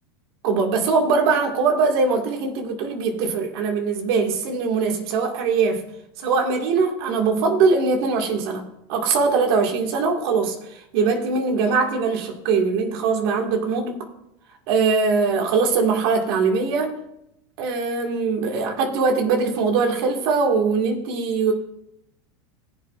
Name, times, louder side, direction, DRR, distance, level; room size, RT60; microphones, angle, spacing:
voice 1, 0.4-5.8 6.2-14.0 14.7-17.0 17.6-21.5, right 4 dB, 70° right, 3 dB, 1.9 m, -21 dB
19.0 x 7.8 x 2.5 m, 0.83 s
supercardioid pair, 125°, 13 cm